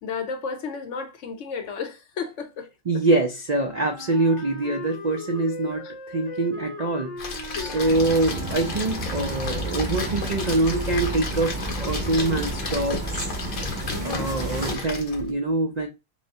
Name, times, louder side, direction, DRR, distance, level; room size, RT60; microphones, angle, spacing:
voice 1, 0.0-3.0 7.5-8.0 13.9-14.3, left 5 dB, 65° left, 1.0 m, -33 dB
voice 2, 2.9-13.0 14.0-15.9, right 2 dB, 70° right, 0.4 m, -25 dB
Wind instrument woodwind instrument, 3.5-9.4, left 2 dB, 35° left, 0.9 m, -39 dB
Splash splatter, 7.2-15.3, left 4 dB, 80° left, 1.4 m, -34 dB
sound 1, 7.9-14.8, right 1 dB, 35° right, 1.4 m, -31 dB
5.9 x 2.1 x 2.6 m
omnidirectional pair, 1.5 m